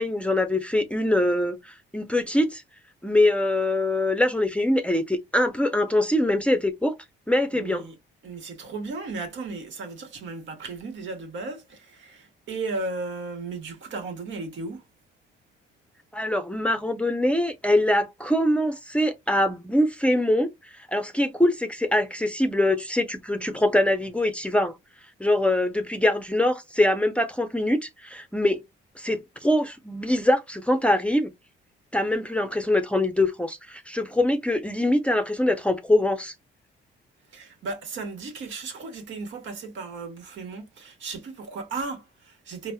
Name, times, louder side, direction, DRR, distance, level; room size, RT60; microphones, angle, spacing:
voice 1, 0.0-2.6 3.0-7.0 7.3-7.8 16.1-24.8 25.2-28.6 29.0-31.3 31.9-36.3, left 1 dB, 5° left, 0.6 m, -23 dB
voice 2, 7.5-8.0 8.2-14.8 37.3-42.7, right 3 dB, 70° right, 1.2 m, -35 dB
3.9 x 2.0 x 2.2 m
cardioid pair, 90°, 20 cm